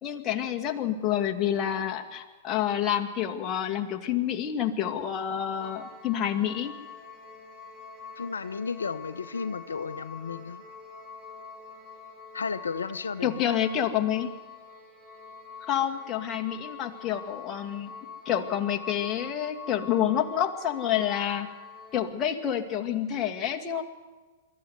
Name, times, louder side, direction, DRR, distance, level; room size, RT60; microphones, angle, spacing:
voice 1, 0.0-6.7 13.2-14.3 15.7-17.9 18.3-21.5 21.9-23.8, left 10 dB, 30° left, 2 dB, 2.2 m, -28 dB
sound 1, 5.6-22.1, left 5 dB, 15° right, 4.3 m, -45 dB
voice 2, 8.2-10.6 12.3-13.4, left 5 dB, 90° left, 11 dB, 0.8 m, -33 dB
23.5 x 14.0 x 9.6 m, 1.3 s
hypercardioid pair, 115°, 0 cm